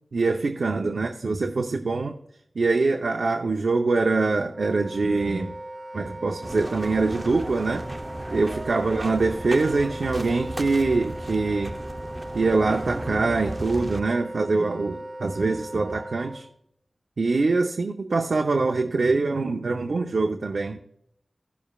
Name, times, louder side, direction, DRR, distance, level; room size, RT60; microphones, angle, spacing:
voice 1, 0.1-2.2 2.5-5.5 5.9-7.9 8.3-11.8 12.3-16.5 17.2-20.8, right 3 dB, 85° right, 2 dB, 0.7 m, -24 dB
Wind instrument woodwind instrument, 4.5-16.4, right 1 dB, 10° right, 1.8 m, -38 dB
sound 1, 6.4-14.0, right 1 dB, 25° right, 0.7 m, -35 dB
17.0 x 7.2 x 2.4 m, 0.73 s
wide cardioid pair, 70°, 0 cm